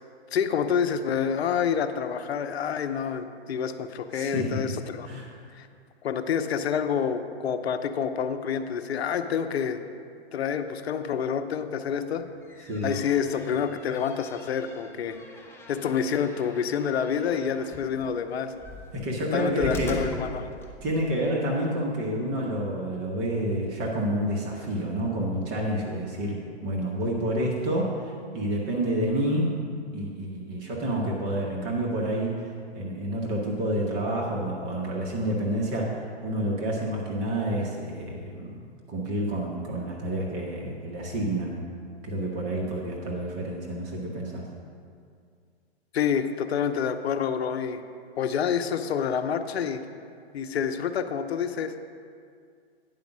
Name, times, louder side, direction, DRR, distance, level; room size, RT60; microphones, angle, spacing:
voice 1, 0.3-5.1 5.6-5.7 6.0-9.8 10.3-12.3 12.8-15.2 15.7-18.5 19.3-20.5 45.9-47.8 48.2-49.8 50.3-51.7, left 7 dB, 65° left, 9 dB, 0.7 m, -28 dB
voice 2, 4.1-4.6 5.0-5.3 12.7-13.0 18.9-20.1 20.8-29.6 29.9-32.5 32.7-41.6 42.0-44.5, right 1 dB, 30° right, -2 dB, 1.3 m, -29 dB
sound 1, 12.2-21.1, left 2 dB, 5° left, 0.6 m, -42 dB
9.6 x 5.2 x 6.1 m, 2.2 s
hypercardioid pair, 125°, 33 cm